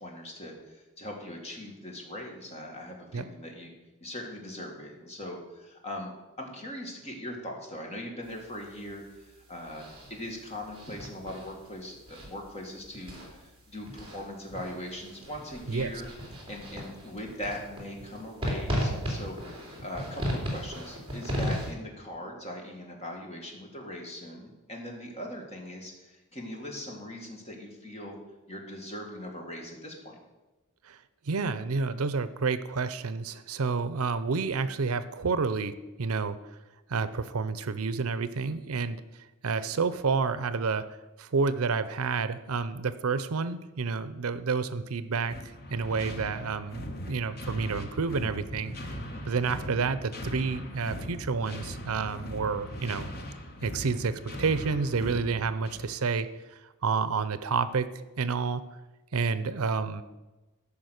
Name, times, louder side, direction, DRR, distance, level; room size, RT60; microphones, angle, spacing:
voice 1, 0.0-3.7 4.0-6.1 6.4-16.1 16.3-28.2 28.5-30.2 49.1-49.4, left 1 dB, 30° left, 1 dB, 2.0 m, -40 dB
sound 1, 8.2-21.7, equal, 25° right, 2.8 m, -37 dB
voice 2, 31.3-36.4 36.9-39.0 39.4-40.9 41.2-45.4 45.7-48.8 49.3-53.1 53.6-57.9 58.2-58.6 59.1-60.0, right 4 dB, 75° right, 14 dB, 0.6 m, -29 dB
sound 2, 45.3-56.0, equal, 45° left, 1.2 m, -40 dB
13.5 x 5.5 x 6.5 m, 1.1 s
head